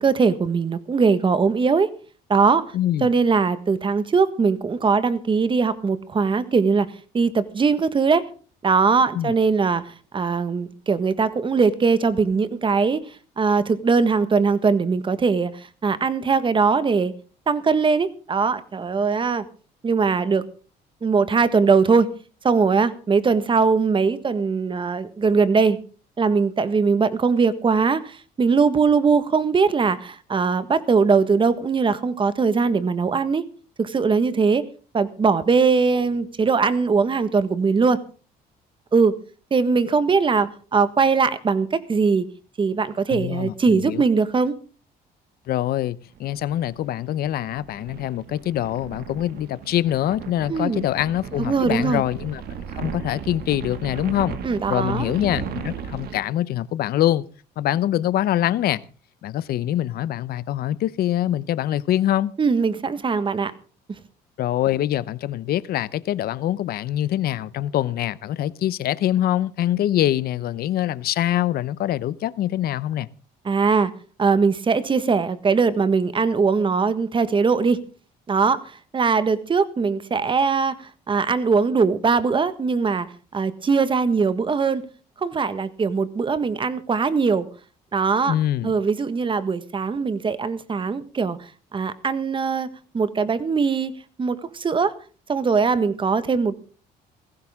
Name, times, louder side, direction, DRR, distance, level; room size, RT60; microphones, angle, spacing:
voice 1, 0.0-1.9 2.3-2.6 3.0-6.9 7.1-8.2 8.6-9.8 10.1-13.0 13.4-15.5 15.8-17.1 17.5-19.4 19.8-20.4 21.0-22.1 22.4-25.8 26.2-33.4 33.8-34.6 34.9-38.0 38.9-39.1 39.5-42.3 42.6-44.5 50.5-50.9 51.4-52.0 54.4-55.1 62.4-63.5 73.4-73.9 74.2-77.8 78.3-78.6 78.9-80.7 81.1-83.1 83.3-84.8 85.2-87.5 87.9-88.3 88.6-91.4 91.7-92.7 92.9-93.9 94.2-94.9 95.3-96.6, right 5 dB, 30° right, 1.5 m, -20 dB
voice 2, 2.7-3.1 9.1-9.3 43.1-44.0 45.5-52.4 52.8-54.4 54.7-57.2 57.6-58.8 59.2-62.3 64.4-73.1 88.3-88.7, left 12 dB, 65° left, 0.8 m, -24 dB
sound 1, 46.2-56.2, right 7 dB, 65° right, 2.2 m, -36 dB
18.0 x 15.5 x 3.7 m
cardioid pair, 110°, 17 cm